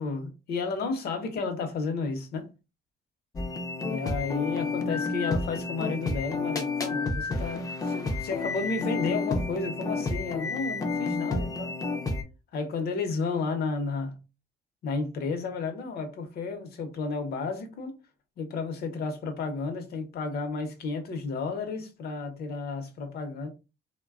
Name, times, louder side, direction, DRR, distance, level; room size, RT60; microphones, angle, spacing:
voice 1, 0.0-2.5 3.8-11.7 12.5-14.1 14.8-17.9 18.4-23.5, left 4 dB, 70° left, 0.7 m, -32 dB
sound 1, 3.3-12.2, left 3 dB, 20° left, 0.4 m, -30 dB
3.2 x 2.2 x 2.4 m
cardioid pair, 165°, 17 cm